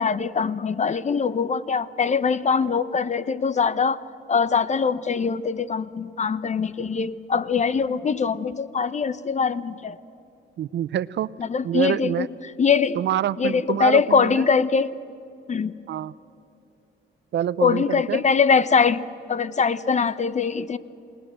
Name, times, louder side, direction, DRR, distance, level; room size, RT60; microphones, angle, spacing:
voice 1, 0.0-4.0 4.3-10.0 11.4-12.3 12.6-13.0 13.4-14.9 15.5-15.8 17.6-20.8, left 5 dB, 35° left, 16 dB, 0.9 m, -22 dB
voice 2, 10.6-11.3 11.6-12.3 12.9-14.5 15.9-16.1 17.3-18.2, right 11 dB, 65° right, 18 dB, 0.6 m, -26 dB
28.0 x 19.5 x 7.8 m, 2.8 s
cardioid pair, 90°, 20 cm